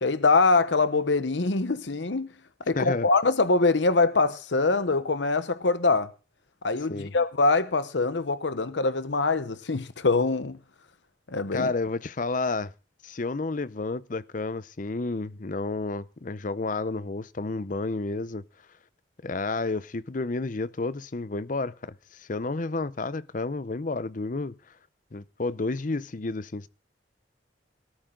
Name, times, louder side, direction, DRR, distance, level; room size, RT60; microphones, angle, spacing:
voice 1, 0.0-2.3 2.7-6.1 6.6-10.6 11.3-11.7, left 3 dB, 85° left, 0.9 m, -24 dB
voice 2, 2.8-3.1 6.9-7.1 11.5-12.7 13.0-18.4 19.2-24.5 25.1-26.7, left 3 dB, 45° left, 0.7 m, -31 dB
18.5 x 13.0 x 3.8 m
head